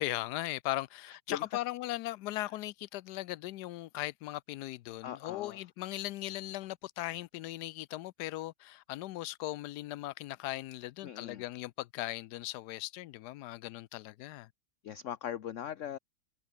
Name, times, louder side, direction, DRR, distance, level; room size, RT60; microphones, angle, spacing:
voice 1, 0.0-14.5, left 16 dB, 80° left, 1.1 m, -38 dB
voice 2, 5.0-5.6 11.0-11.4 14.8-16.0, left 10 dB, 55° left, 1.0 m, -39 dB
omnidirectional pair, 1.8 m